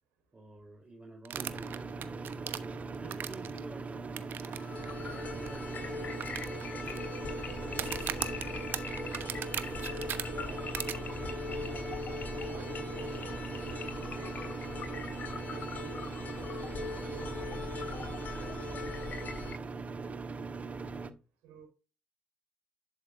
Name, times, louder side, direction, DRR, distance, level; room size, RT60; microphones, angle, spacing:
voice 1, 0.3-2.1 2.5-4.3 4.8-8.6, right 2 dB, 25° right, 4.0 m, -51 dB
sound 1, 1.2-3.6 4.2-4.6 4.8-4.9 5.5-5.6 6.2-7.0 7.7-10.2 10.7-10.9, right 10 dB, 70° right, 1.0 m, -37 dB
sound 2, 1.3-21.1, right 4 dB, 40° right, 1.3 m, -40 dB
sound 3, 4.5-19.5, left 4 dB, 55° left, 3.6 m, -40 dB
voice 2, 10.2-11.9 12.5-14.6 14.9-16.5 17.1-20.6 21.4-21.7, right 8 dB, 85° right, 4.6 m, -54 dB
11.5 x 6.6 x 2.7 m
supercardioid pair, 55°, 4 cm